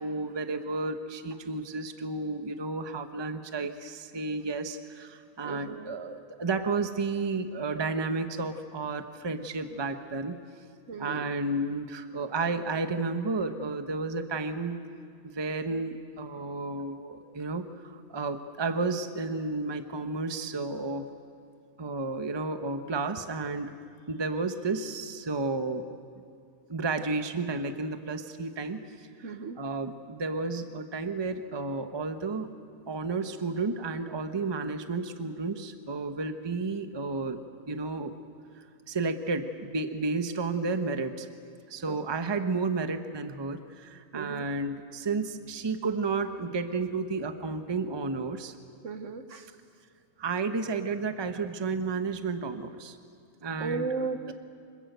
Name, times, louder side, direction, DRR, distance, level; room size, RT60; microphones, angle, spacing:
voice 1, 0.0-10.4 11.0-14.8 15.2-21.1 21.8-23.7 24.1-26.0 26.7-29.3 29.6-32.5 32.9-37.4 37.7-38.1 38.9-41.3 41.7-48.5 50.2-53.0 53.4-53.9 54.3-54.4, right 3 dB, 20° right, 8 dB, 0.9 m, -32 dB
voice 2, 5.4-5.9 10.9-11.3 29.2-29.6 41.9-42.0 44.1-44.5 48.8-49.5 53.6-54.3, right 4 dB, 60° right, 9 dB, 1.3 m, -35 dB
26.0 x 21.5 x 8.0 m, 2.3 s
omnidirectional pair, 1.5 m